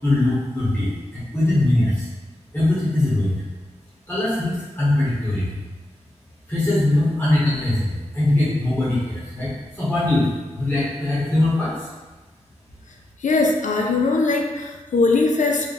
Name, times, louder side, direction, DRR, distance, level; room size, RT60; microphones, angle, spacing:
voice 1, 0.0-2.1 2.5-3.4 4.1-5.6 6.5-11.9, left 1 dB, 15° left, -11 dB, 1.3 m, -21 dB
voice 2, 13.2-15.7, left 3 dB, 80° left, 2 dB, 0.4 m, -20 dB
3.4 x 2.2 x 3.9 m, 1.2 s
cardioid pair, 40°, 13 cm